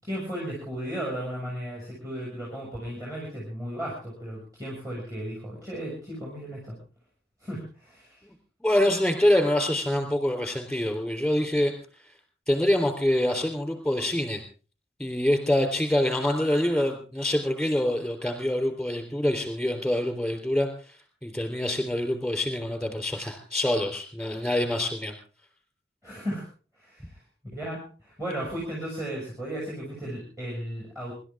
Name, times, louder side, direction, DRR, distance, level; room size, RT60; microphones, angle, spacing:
voice 1, 0.0-6.8 7.4-8.2 26.0-26.4 26.7-27.2 27.5-31.1, equal, 15° right, -5 dB, 6.7 m, -35 dB
voice 2, 8.6-11.7 12.5-14.4 15.0-20.7 21.2-25.1, left 1 dB, 5° left, 5 dB, 3.8 m, -25 dB
26.5 x 12.5 x 3.7 m, 0.37 s
head